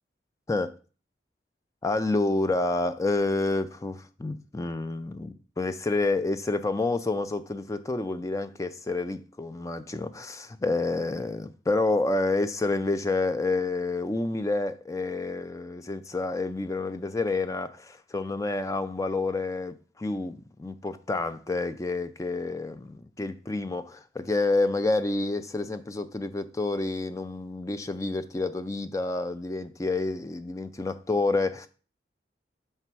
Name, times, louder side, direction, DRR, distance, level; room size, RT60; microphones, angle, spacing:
voice 1, 1.8-31.7, left 2 dB, 15° left, 0.3 m, -29 dB
7.0 x 3.3 x 4.6 m
head